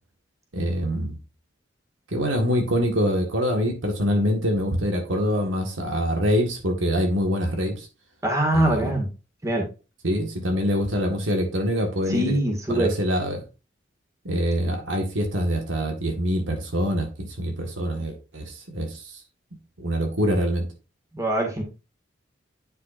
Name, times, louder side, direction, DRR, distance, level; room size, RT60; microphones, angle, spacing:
voice 1, 0.5-1.2 2.1-7.9 8.5-8.9 10.0-12.4 12.7-13.4 14.3-19.2 19.8-20.7, equal, 85° right, 3 dB, 1.7 m, -25 dB
voice 2, 8.2-9.1 9.4-9.7 12.1-12.9 21.1-21.6, right 1 dB, 15° right, 1 dB, 2.0 m, -23 dB
9.4 x 5.7 x 2.6 m, 0.31 s
head